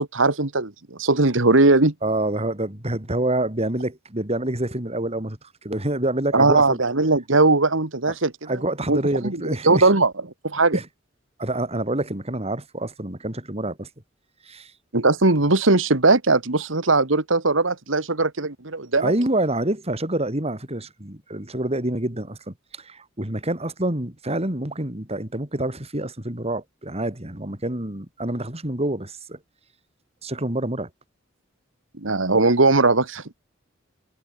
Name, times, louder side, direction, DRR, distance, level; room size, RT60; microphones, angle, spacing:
voice 1, 0.0-1.9 6.3-8.3 8.9-9.4 9.6-10.1 10.4-10.8 14.9-19.1 32.0-33.2, right 3 dB, 90° right, 2.1 m, -19 dB
voice 2, 2.0-6.8 8.1-8.2 8.5-9.9 10.7-10.9 11.4-13.9 14.5-14.7 19.0-29.4 30.2-30.9, right 1 dB, 35° right, 4.1 m, -27 dB
head